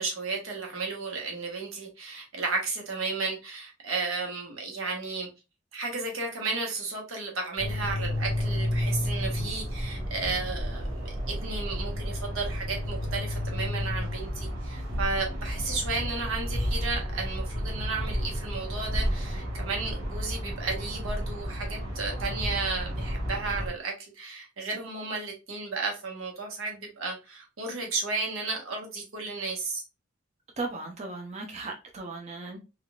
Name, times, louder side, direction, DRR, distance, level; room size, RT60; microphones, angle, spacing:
voice 1, 0.0-5.3 5.7-29.8, right 3 dB, 90° right, 1.1 m, -33 dB
sound 1, 7.6-23.7, equal, 70° right, 1.3 m, -31 dB
voice 2, 30.6-32.6, right 3 dB, 35° right, 0.5 m, -36 dB
3.6 x 2.3 x 2.3 m
head